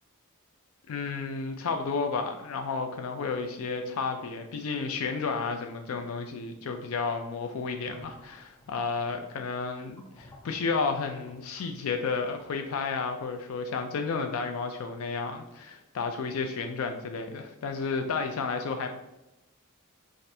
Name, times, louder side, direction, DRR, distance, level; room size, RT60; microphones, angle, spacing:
voice 1, 0.9-18.9, left 4 dB, 70° left, 5 dB, 0.4 m, -32 dB
sound 1, 7.6-12.9, equal, 15° left, 0.5 m, -53 dB
4.2 x 2.5 x 3.3 m, 0.94 s
head